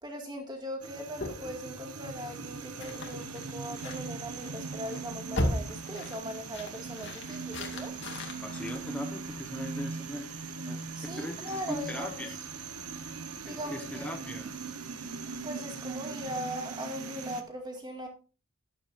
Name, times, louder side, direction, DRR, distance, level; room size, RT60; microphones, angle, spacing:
voice 1, 0.0-7.9 10.9-12.3 13.5-14.1 15.4-18.1, equal, 20° right, 3 dB, 2.1 m, -40 dB
sound 1, 0.8-17.4, right 4 dB, 90° right, 1.2 m, -40 dB
sound 2, 1.2-9.6, left 1 dB, 55° left, 2.2 m, -38 dB
voice 2, 8.4-10.3 10.6-12.4 13.4-14.5, left 1 dB, 5° left, 3 dB, 1.1 m, -39 dB
12.5 x 11.0 x 2.6 m, 0.34 s
head